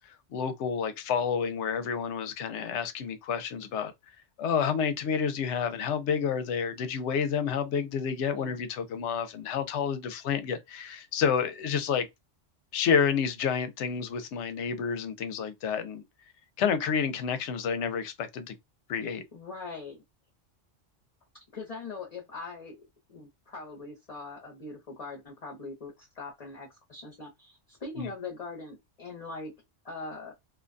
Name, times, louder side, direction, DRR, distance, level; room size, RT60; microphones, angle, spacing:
voice 1, 0.0-3.9 4.4-12.1 12.7-16.0 16.6-18.5 18.9-19.2 28.0-28.1, left 6 dB, 70° left, 0.8 m, -29 dB
voice 2, 19.0-20.0 21.5-29.5 29.8-30.3, left 3 dB, 35° left, 0.7 m, -42 dB
2.5 x 2.2 x 2.5 m
omnidirectional pair, 1.3 m